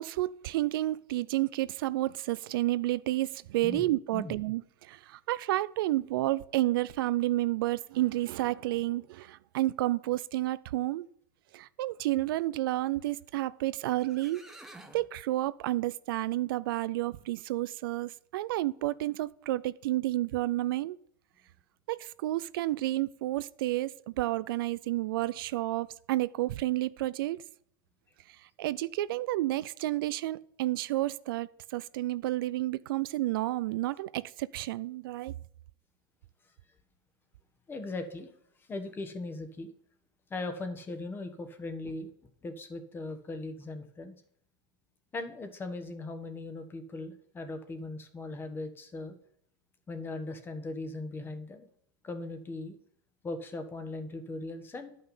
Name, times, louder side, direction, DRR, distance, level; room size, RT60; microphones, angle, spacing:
voice 1, 0.0-11.1 11.5-14.4 14.9-21.0 21.9-27.4 28.3-35.3, right 16 dB, 75° right, 0.4 m, -31 dB
sound 1, 13.6-13.7 14.0-15.1, right 2 dB, 5° right, 1.1 m, -50 dB
voice 2, 37.7-38.3 38.7-39.7 40.3-42.1 42.4-44.1 45.1-49.2 49.9-51.7 52.0-52.7 53.2-55.0, left 2 dB, 20° left, 1.3 m, -39 dB
11.0 x 5.6 x 5.5 m
supercardioid pair, 130°, 12 cm